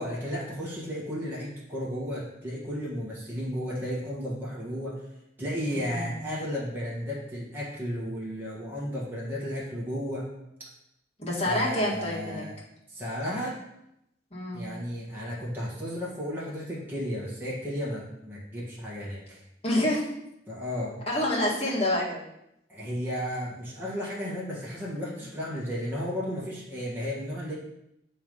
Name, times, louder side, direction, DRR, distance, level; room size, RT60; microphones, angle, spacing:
voice 1, 0.0-5.0 5.4-10.3 11.4-12.6 12.9-13.6 14.5-19.4 20.5-21.0 22.7-27.5, equal, 10° right, -6 dB, 1.5 m, -33 dB
voice 2, 5.7-6.2 11.2-12.5 14.3-14.7 19.6-20.1 21.1-22.2, left 1 dB, 35° left, -5 dB, 1.8 m, -27 dB
7.0 x 3.3 x 5.3 m, 0.82 s
head